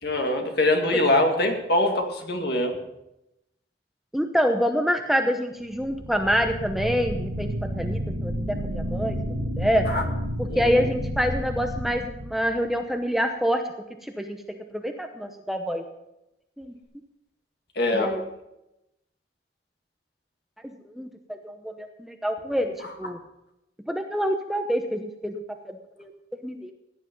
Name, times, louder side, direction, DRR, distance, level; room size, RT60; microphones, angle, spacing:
voice 1, 0.0-2.7 9.9-10.0 10.5-10.9 17.8-18.1, left 1 dB, 60° left, 3 dB, 2.3 m, -23 dB
voice 2, 4.1-9.2 9.6-9.9 10.4-13.6 14.0-15.8 16.6-16.7 17.9-18.3 21.0-23.2 23.9-26.1 26.4-26.7, equal, ahead, 5 dB, 0.9 m, -26 dB
sound 1, 5.7-12.8, equal, 80° right, 4.4 m, -31 dB
16.5 x 10.0 x 5.3 m, 0.88 s
head